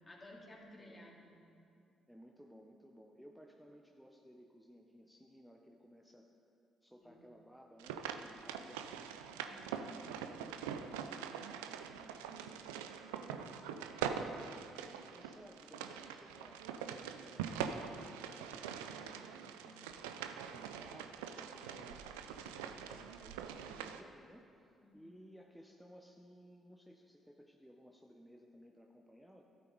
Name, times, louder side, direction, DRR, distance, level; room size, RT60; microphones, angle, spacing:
voice 1, 0.0-1.4 7.0-7.2 9.4-9.8 24.8-25.2, left 1 dB, 25° left, -2 dB, 2.4 m, -56 dB
voice 2, 0.8-1.1 2.1-6.3 6.8-9.2 9.8-12.7 13.2-14.8 15.1-16.7 17.2-20.0 20.5-29.4, equal, ahead, 1 dB, 0.9 m, -59 dB
sound 1, 7.8-24.0, right 8 dB, 85° right, 0.4 m, -44 dB
13.5 x 8.5 x 4.1 m, 2.6 s
hypercardioid pair, 50°, 0 cm